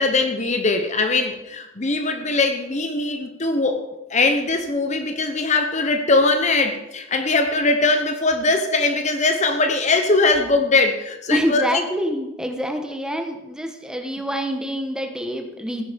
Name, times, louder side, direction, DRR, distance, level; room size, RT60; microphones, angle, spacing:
voice 1, 0.0-3.8 4.1-11.8, left 3 dB, 35° left, 7 dB, 1.0 m, -21 dB
voice 2, 11.3-15.9, equal, 5° right, 4 dB, 1.2 m, -26 dB
14.5 x 9.8 x 5.2 m, 0.95 s
head